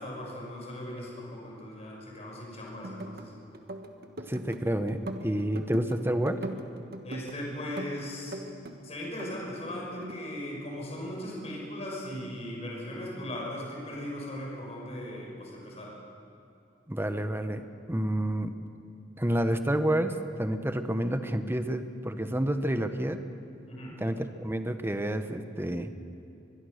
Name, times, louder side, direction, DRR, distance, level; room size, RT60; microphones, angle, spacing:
voice 1, 0.0-3.3 7.0-8.4 8.8-16.0 23.7-24.0, left 1 dB, 35° left, -2 dB, 5.6 m, -38 dB
sound 1, 2.7-3.3 3.5-4.6 4.9-6.0 6.3-7.4 7.8-8.8 9.0-10.2, right 1 dB, 55° right, 1.5 m, -40 dB
voice 2, 4.3-6.4 16.9-18.5 19.2-23.2 24.0-25.9, right 1 dB, 10° right, 9 dB, 1.0 m, -29 dB
23.5 x 22.0 x 6.6 m, 2.7 s
head